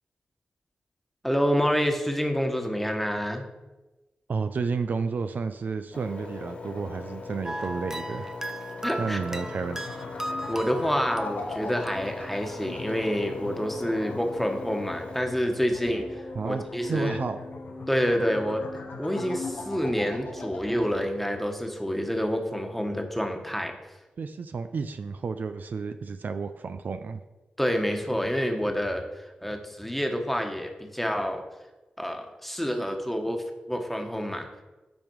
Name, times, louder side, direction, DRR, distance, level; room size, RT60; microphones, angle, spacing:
voice 1, 1.2-3.4 8.8-9.2 10.3-17.2 17.9-18.6 19.0-23.7 27.6-31.4 32.0-34.5, equal, 5° left, 4 dB, 1.3 m, -28 dB
voice 2, 4.3-8.3 9.0-9.9 16.4-16.6 16.9-17.4 24.2-27.2, right 5 dB, 65° right, 9 dB, 0.4 m, -31 dB
Engine, 5.9-15.2, left 4 dB, 40° left, 1.4 m, -41 dB
sound 1, 7.4-12.6, right 1 dB, 15° right, 0.6 m, -37 dB
sound 2, 8.9-21.1, left 3 dB, 85° left, 1.0 m, -40 dB
10.0 x 3.6 x 4.6 m, 1.1 s
cardioid pair, 45°, 3 cm